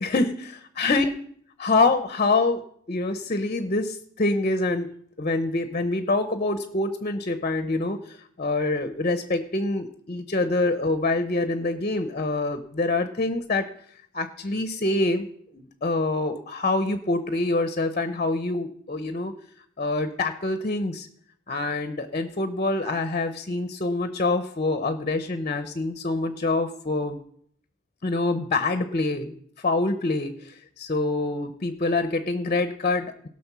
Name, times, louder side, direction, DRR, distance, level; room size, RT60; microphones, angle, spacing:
voice 1, 0.0-1.1 1.6-4.9 5.2-13.7 14.1-15.3 15.5-19.3 19.8-21.1 21.5-27.2 28.0-33.3, left 2 dB, 40° left, 10 dB, 0.8 m, -26 dB
17.5 x 6.1 x 6.1 m, 0.64 s
head